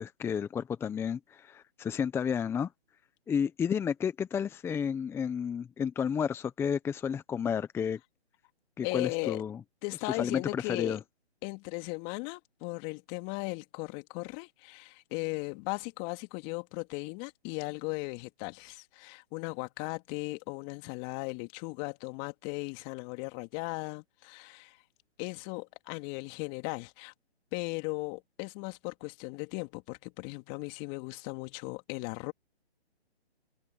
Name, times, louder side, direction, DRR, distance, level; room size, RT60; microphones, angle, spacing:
voice 1, 0.0-2.7 3.3-8.0 8.8-9.6 10.1-11.0, left 7 dB, 5° left, 1.2 m, -31 dB
voice 2, 8.8-9.4 9.8-11.0 11.4-24.8 25.2-27.1 27.5-32.3, left 29 dB, 25° left, 2.7 m, -37 dB
figure-of-eight pair, 145°, 33 cm